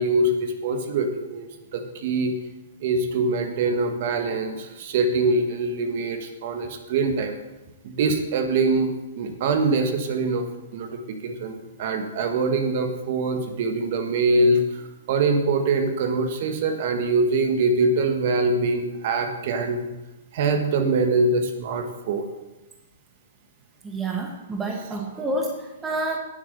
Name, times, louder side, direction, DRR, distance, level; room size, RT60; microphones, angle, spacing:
voice 1, 0.0-2.3 2.8-7.3 7.8-10.5 10.7-19.9 20.3-22.3 25.1-25.2, right 3 dB, 45° right, 6 dB, 1.4 m, -24 dB
voice 2, 23.8-26.2, right 2 dB, 10° right, 1 dB, 1.1 m, -28 dB
10.0 x 7.7 x 6.7 m, 1.0 s
hypercardioid pair, 160°, 0 cm